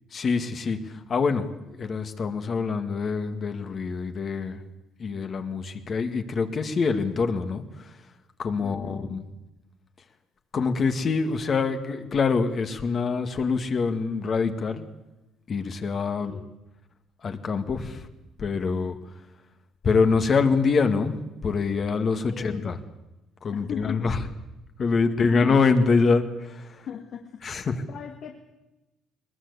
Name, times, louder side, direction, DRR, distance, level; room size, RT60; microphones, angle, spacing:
voice 1, 0.1-0.8 1.1-1.5 1.8-4.6 5.0-7.6 8.4-9.2 10.5-14.8 15.5-16.3 17.2-18.1 18.4-19.0 19.8-21.1 21.4-22.8 23.4-24.2 24.8-26.8 27.4-27.8, left 4 dB, 40° left, 7 dB, 2.0 m, -25 dB
voice 2, 8.6-9.2 16.2-16.5 22.3-22.7 23.5-24.3 25.1-25.5 26.9-28.6, left 8 dB, 55° left, 4 dB, 2.0 m, -40 dB
21.0 x 21.0 x 8.3 m, 1.0 s
cardioid pair, 120°, 0 cm